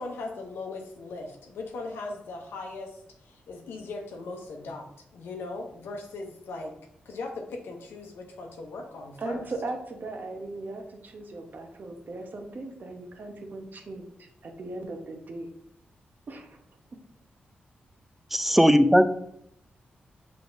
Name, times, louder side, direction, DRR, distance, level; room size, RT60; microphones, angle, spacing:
voice 1, 0.0-4.9 5.1-6.8 7.1-9.5, left 3 dB, 85° left, 3 dB, 0.7 m, -38 dB
voice 2, 9.2-15.5 16.3-16.6, right 2 dB, 55° right, 4 dB, 0.9 m, -38 dB
voice 3, 18.3-19.1, equal, 5° right, 10 dB, 0.4 m, -18 dB
5.8 x 3.3 x 2.6 m, 0.74 s
cardioid pair, 55°, 4 cm